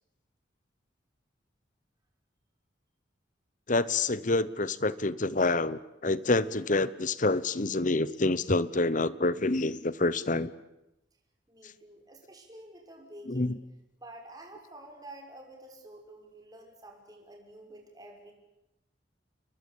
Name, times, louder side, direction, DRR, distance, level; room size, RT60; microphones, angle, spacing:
voice 1, 3.7-10.5 13.3-13.6, left 2 dB, 40° left, 17 dB, 1.0 m, -27 dB
voice 2, 11.5-13.5 14.0-18.3, right 1 dB, 20° right, 2 dB, 5.8 m, -49 dB
29.5 x 22.0 x 8.6 m, 0.91 s
head